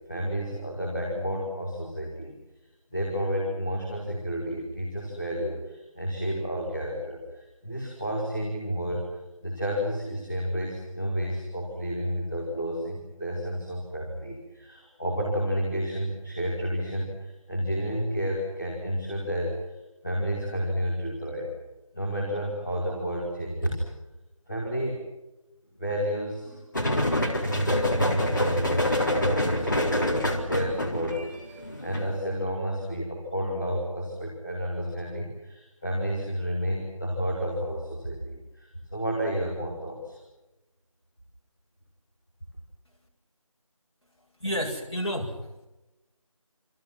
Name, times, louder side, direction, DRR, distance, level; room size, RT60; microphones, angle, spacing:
voice 1, 0.1-2.4 2.9-9.1 9.4-19.7 20.0-21.5 21.9-23.8 24.4-25.1 25.8-26.6 27.4-30.1 30.4-40.2, equal, 5° left, -11 dB, 1.4 m, -31 dB
sound 1, 26.7-32.1, left 1 dB, 35° left, 3.9 m, -26 dB
voice 2, 44.2-45.7, equal, 50° left, -1 dB, 8.0 m, -31 dB
28.5 x 26.5 x 6.1 m, 1.0 s
figure-of-eight pair, 170°, 18 cm